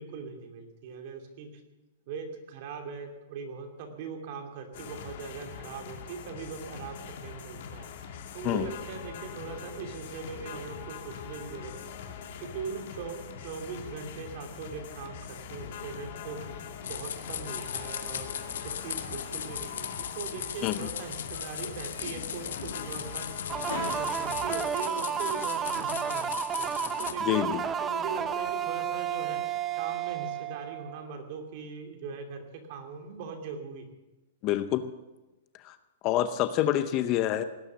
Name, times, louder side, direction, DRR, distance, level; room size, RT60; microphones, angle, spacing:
voice 1, 0.0-1.6 2.1-23.3 23.7-29.5 29.8-33.9 36.7-36.8, right 5 dB, 40° right, 3 dB, 2.7 m, -41 dB
sound 1, 4.7-24.6, left 7 dB, 50° left, 2.2 m, -42 dB
sound 2, 16.8-27.1, left 8 dB, 85° left, 1.7 m, -38 dB
sound 3, 23.5-31.1, right 8 dB, 15° right, 0.6 m, -32 dB
voice 2, 27.2-27.6 34.4-34.9 35.7-35.8 36.0-37.4, left 12 dB, 25° left, 11 dB, 0.6 m, -26 dB
18.5 x 9.9 x 7.3 m, 1.1 s
hypercardioid pair, 170°, 0 cm